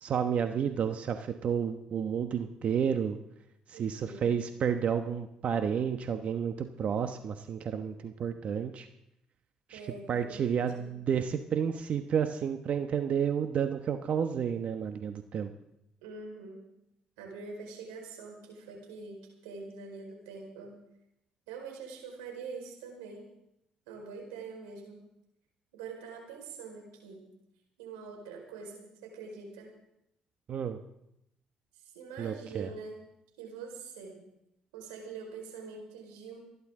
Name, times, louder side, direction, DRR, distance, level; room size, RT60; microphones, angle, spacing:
voice 1, 0.0-3.2 3.7-8.9 9.7-9.8 10.1-15.5 30.5-30.8 32.2-32.7, right 7 dB, 55° right, 7 dB, 1.1 m, -31 dB
voice 2, 3.7-4.2 9.7-10.9 16.0-16.6 17.2-20.8 21.5-23.3 23.9-25.0 25.7-27.2 27.8-29.7 31.8-33.1 33.4-34.2 34.7-36.4, right 4 dB, 90° right, 1 dB, 4.7 m, -44 dB
28.5 x 11.0 x 3.8 m, 0.81 s
hypercardioid pair, 60°, 3 cm